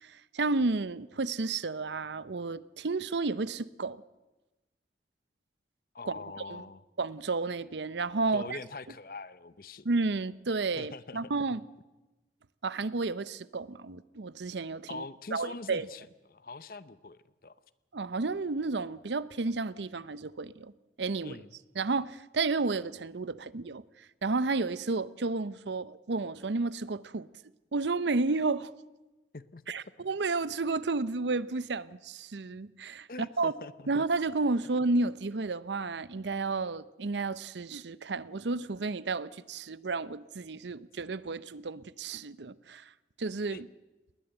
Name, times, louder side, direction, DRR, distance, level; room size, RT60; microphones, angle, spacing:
voice 1, 0.0-4.0 6.1-6.2 6.5-6.6 7.0-8.6 9.8-11.6 12.6-15.0 15.3-15.9 17.9-20.7 21.0-21.4 21.8-23.8 24.2-27.3 27.7-28.7 29.7-33.5 33.9-42.8 43.2-43.7, right 3 dB, 85° right, 0.7 m, -32 dB
voice 2, 5.9-6.8 8.3-9.8 10.8-11.4 14.9-17.5 21.2-21.5 29.3-29.6 33.1-33.9 43.5-43.6, left 3 dB, 55° left, 0.8 m, -43 dB
20.0 x 19.0 x 8.0 m
head